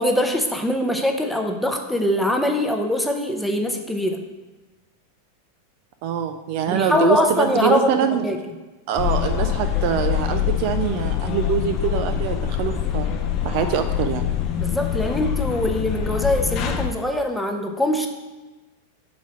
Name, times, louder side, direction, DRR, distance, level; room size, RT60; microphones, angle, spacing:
voice 1, 0.0-4.2 6.7-8.4 14.6-18.1, left 1 dB, ahead, 3 dB, 0.7 m, -23 dB
voice 2, 6.0-8.2 8.9-13.1 13.4-14.3, right 8 dB, 45° right, 8 dB, 0.4 m, -24 dB
sound 1, 9.0-16.9, left 9 dB, 35° left, 0.6 m, -24 dB
6.1 x 4.0 x 5.9 m, 1.2 s
figure-of-eight pair, 90°, 0 cm